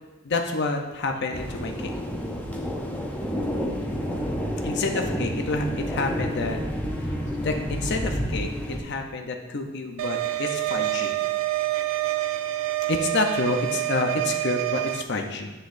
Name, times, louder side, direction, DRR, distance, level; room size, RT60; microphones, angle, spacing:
voice 1, 0.2-1.9 4.6-6.6 7.4-11.1 12.9-15.5, left 3 dB, 55° left, 4 dB, 0.7 m, -28 dB
sound 1, 1.3-8.8, equal, 10° left, 0.7 m, -30 dB
sound 2, 10.0-15.0, right 16 dB, 65° right, 0.3 m, -27 dB
7.4 x 6.5 x 2.6 m, 1.2 s
head